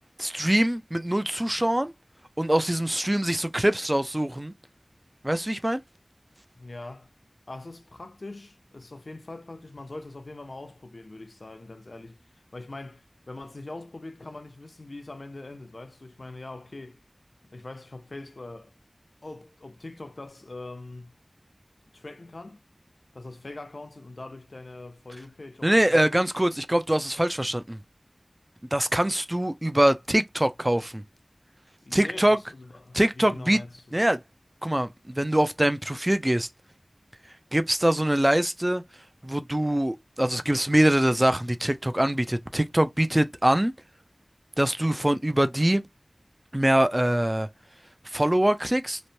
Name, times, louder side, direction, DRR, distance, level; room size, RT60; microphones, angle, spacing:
voice 1, 0.2-1.9 2.4-4.5 5.2-5.8 25.6-27.8 28.7-31.0 31.9-32.4 32.9-33.6 33.9-34.2 34.6-36.5 37.5-38.8 39.2-43.7 44.6-45.8 46.5-47.5 48.1-49.0, right 1 dB, 25° right, 0.4 m, -23 dB
voice 2, 6.6-7.1 7.5-17.0 17.5-18.7 19.2-21.1 21.9-22.6 23.1-26.0 31.8-34.0, left 2 dB, 80° left, 0.6 m, -42 dB
3.1 x 2.1 x 2.6 m
wide cardioid pair, 40°, 0 cm